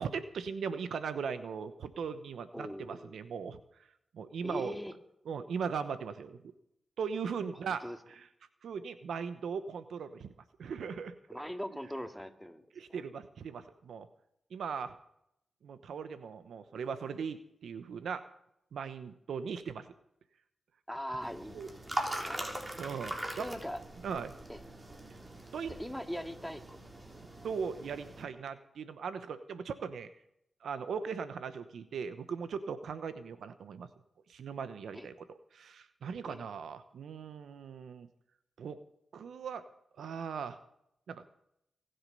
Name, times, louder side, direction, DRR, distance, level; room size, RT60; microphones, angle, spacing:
voice 1, 0.0-3.6 4.1-4.8 5.3-6.5 7.0-7.8 8.1-8.3 8.6-10.3 10.6-11.1 12.7-14.1 14.5-14.9 15.6-17.4 17.6-18.2 18.7-19.9 21.5-21.7 22.8-23.5 24.0-24.3 25.5-25.7 27.4-30.1 30.6-33.9 34.3-35.1 35.5-38.1 38.6-38.8 39.1-39.6 40.0-40.6 41.1-41.2, right 6 dB, 85° right, 11 dB, 0.9 m, -39 dB
voice 2, 2.5-3.2 4.4-4.9 7.8-8.0 11.3-12.6 12.9-13.0 20.9-21.6 22.2-22.5 23.4-23.8 24.5-24.6 25.7-26.8 34.9-35.1 36.3-36.5, equal, 5° left, 5 dB, 2.2 m, -40 dB
sound 1, 21.2-28.2, right 1 dB, 30° right, 3.8 m, -41 dB
24.0 x 8.0 x 5.4 m, 0.75 s
cardioid pair, 45°, 0 cm